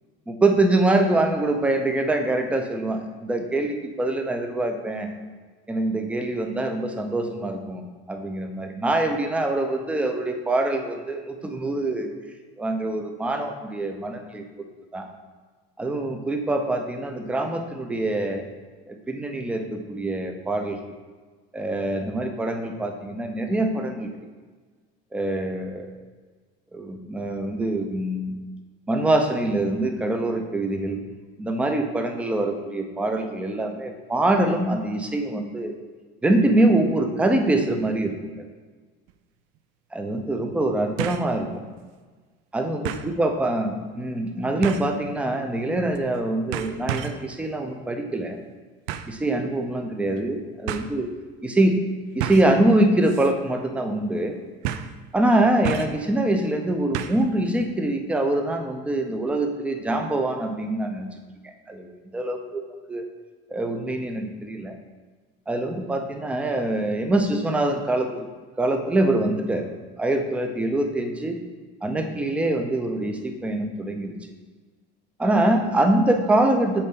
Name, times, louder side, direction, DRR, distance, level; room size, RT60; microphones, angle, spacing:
voice 1, 0.3-5.1 5.7-7.8 8.1-12.1 12.6-14.4 14.9-15.1 15.8-18.5 18.9-20.8 21.5-24.1 25.1-25.9 26.7-28.3 28.9-31.0 31.4-35.7 36.2-38.4 39.9-41.6 42.5-48.4 49.1-51.1 51.4-51.8 52.1-54.4 55.1-61.1 61.7-63.0 63.5-64.7 65.5-68.3 68.6-69.7 70.0-71.4 71.8-74.1 75.2-76.9, right 1 dB, 5° right, 4 dB, 0.4 m, -24 dB
sound 1, 39.1-39.2 41.0-41.3 41.8-41.9 42.8-43.1 44.6-45.0 45.9-46.2 46.5-47.3 48.9-49.2 50.2-50.3 50.7-50.9 52.2-52.6 53.0-53.3 53.6-53.7 54.6-55.0 55.6-56.0 56.9-57.3 57.6-57.7, right 10 dB, 85° right, 0.4 m, -31 dB
6.7 x 4.2 x 3.7 m, 1.4 s
cardioid pair, 170°, 20 cm